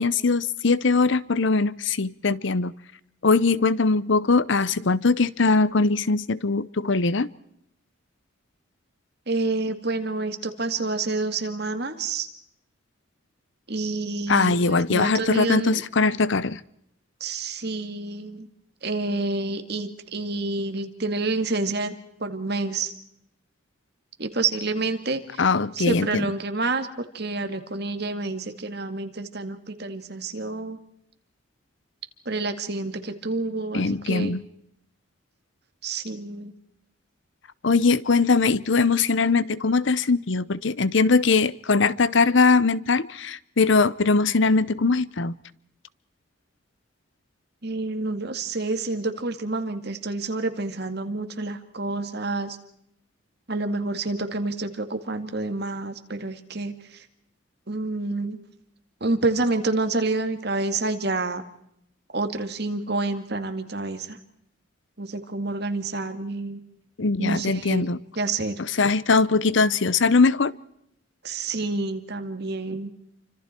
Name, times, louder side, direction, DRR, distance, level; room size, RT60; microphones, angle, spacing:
voice 1, 0.0-2.7 3.2-7.3 14.3-16.6 25.4-26.3 33.7-34.4 37.6-45.3 67.0-68.0 68.8-70.5, left 4 dB, 65° left, 0.8 m, -21 dB
voice 2, 9.3-12.3 13.7-15.8 17.2-18.5 18.8-21.9 22.2-22.9 24.2-25.5 25.8-30.8 32.3-34.4 35.8-36.5 47.6-52.6 53.5-57.0 57.7-58.4 59.0-61.4 62.1-64.2 65.0-66.6 67.2-67.9 68.2-68.6 71.2-72.9, right 3 dB, 50° right, 2.2 m, -28 dB
29.0 x 25.5 x 4.5 m
head